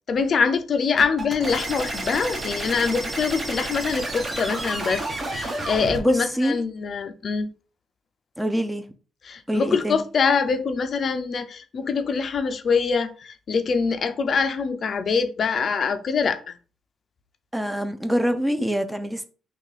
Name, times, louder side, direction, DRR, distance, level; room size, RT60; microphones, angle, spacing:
voice 1, 0.1-7.5 9.2-16.5, left 5 dB, 50° left, 0.4 m, -24 dB
sound 1, 1.0-6.0, right 2 dB, 30° right, 0.9 m, -30 dB
voice 2, 6.0-6.6 8.4-8.8 9.5-10.0 17.5-19.3, equal, 5° right, 0.4 m, -25 dB
3.5 x 2.3 x 3.2 m
cardioid pair, 90°, 0 cm